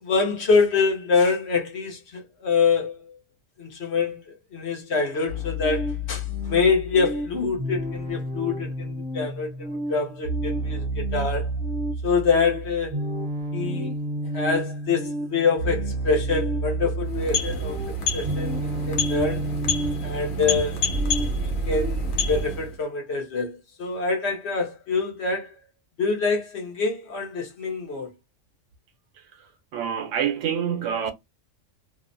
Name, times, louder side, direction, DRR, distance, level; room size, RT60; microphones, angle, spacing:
voice 1, 0.0-3.2 3.6-11.5 12.0-13.0 13.5-13.9 14.3-17.8 18.1-19.5 20.0-20.8 21.4-25.6 26.0-28.1, left 4 dB, 60° left, 1.0 m, -25 dB
sound 1, 5.3-22.4, right 1 dB, 50° right, 0.8 m, -30 dB
sound 2, 17.0-22.8, left 1 dB, 85° left, 1.1 m, -29 dB
voice 2, 29.7-31.1, right 8 dB, 70° right, 0.9 m, -26 dB
2.7 x 2.0 x 2.5 m
omnidirectional pair, 1.3 m